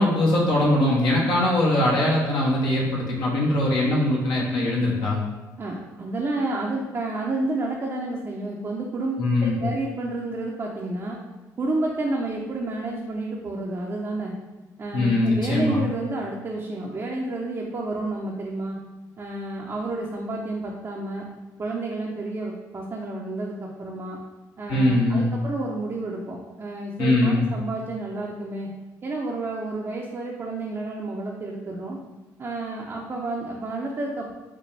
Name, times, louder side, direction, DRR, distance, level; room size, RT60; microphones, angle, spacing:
voice 1, 0.0-5.2 9.2-9.6 14.9-15.8 24.7-25.3 27.0-27.5, left 1 dB, 65° left, -3 dB, 1.0 m, -21 dB
voice 2, 5.6-11.2 11.6-14.3 14.8-18.8 19.2-21.3 21.6-24.2 24.6-28.7 29.0-32.0 32.4-34.3, right 2 dB, 35° right, -2 dB, 0.6 m, -30 dB
5.1 x 2.2 x 3.3 m, 1.1 s
supercardioid pair, 65°, 8 cm